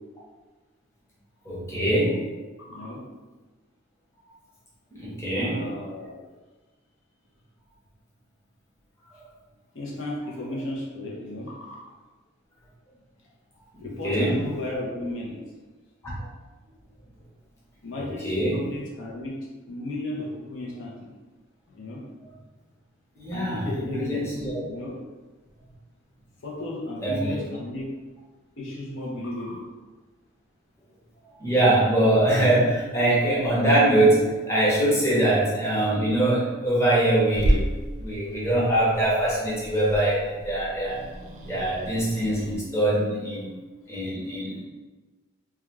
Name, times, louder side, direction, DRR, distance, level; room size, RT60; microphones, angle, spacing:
voice 1, 1.4-2.2 4.9-5.6 13.8-14.4 16.2-16.3 18.0-18.6 23.2-24.6 27.0-27.4 31.4-37.6 38.0-41.1 41.5-43.5 43.9-44.6, right 1 dB, 15° left, -7 dB, 0.8 m, -23 dB
voice 2, 2.6-3.0 5.4-6.2 9.7-11.8 13.8-15.4 17.8-19.4 19.7-21.1 21.7-22.0 23.3-24.9 26.4-27.9 28.6-29.6, left 1 dB, 75° left, -3 dB, 0.6 m, -34 dB
Growling / Hiss, 37.3-42.6, right 1 dB, 35° right, 0.3 m, -31 dB
2.3 x 2.3 x 3.2 m, 1.2 s
head